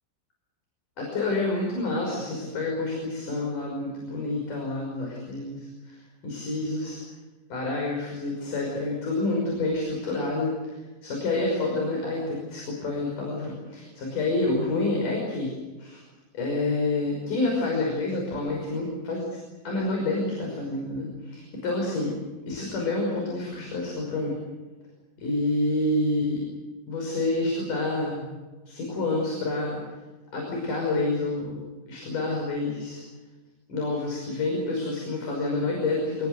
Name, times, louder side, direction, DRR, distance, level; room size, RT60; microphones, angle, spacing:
voice 1, 1.0-5.9 6.2-7.0 7.5-15.5 15.8-16.0 16.3-19.4 19.6-22.1 22.5-24.4 25.2-26.4 26.9-28.3 28.7-29.8 30.3-31.6 31.9-33.0 33.7-36.3, left 2 dB, 60° left, -1 dB, 7.2 m, -28 dB
27.0 x 20.0 x 8.0 m, 1.2 s
omnidirectional pair, 4.1 m